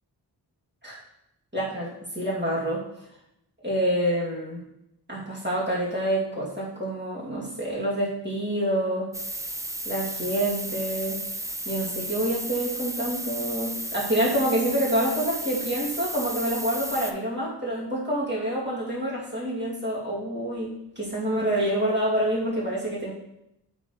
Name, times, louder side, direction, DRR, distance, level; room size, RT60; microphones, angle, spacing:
voice 1, 1.5-2.9 3.6-4.7 5.1-9.1 9.8-11.2 11.7-23.1, right 1 dB, 25° right, -7 dB, 2.5 m, -27 dB
sound 1, 9.1-17.1, right 1 dB, 10° right, 0.4 m, -34 dB
7.7 x 4.3 x 3.1 m, 0.83 s
wide cardioid pair, 70°, 41 cm